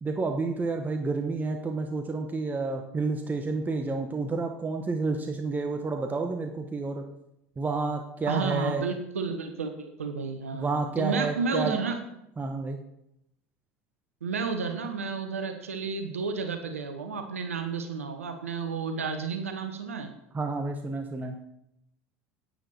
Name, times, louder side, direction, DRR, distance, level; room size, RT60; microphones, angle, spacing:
voice 1, 0.0-7.0 7.6-8.8 10.5-11.7 12.4-12.8 20.3-21.4, right 3 dB, 25° right, 4 dB, 1.1 m, -30 dB
voice 2, 8.3-12.0 14.2-20.1, right 5 dB, 85° right, 7 dB, 1.0 m, -31 dB
10.5 x 9.2 x 4.3 m, 0.81 s
hypercardioid pair, 70°, 7 cm